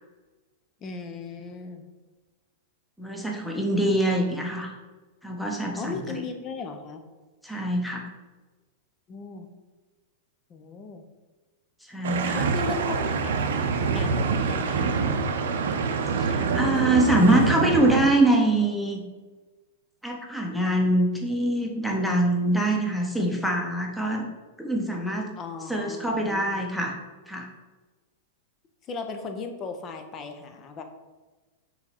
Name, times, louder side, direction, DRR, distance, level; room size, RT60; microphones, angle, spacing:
voice 1, 0.8-1.8 5.7-7.0 9.1-9.5 10.5-11.0 12.3-15.2 25.4-26.6 28.9-30.8, left 4 dB, 30° left, 6 dB, 0.8 m, -37 dB
voice 2, 3.0-4.7 5.2-6.2 7.4-8.1 11.9-12.4 16.2-19.0 20.0-24.2 24.6-25.3 25.7-26.9 27.3-27.5, right 1 dB, ahead, 0 dB, 1.1 m, -24 dB
sound 1, 12.0-18.1, right 5 dB, 65° right, 0.6 m, -25 dB
5.6 x 3.9 x 4.6 m, 1.2 s
figure-of-eight pair, 95°, 0 cm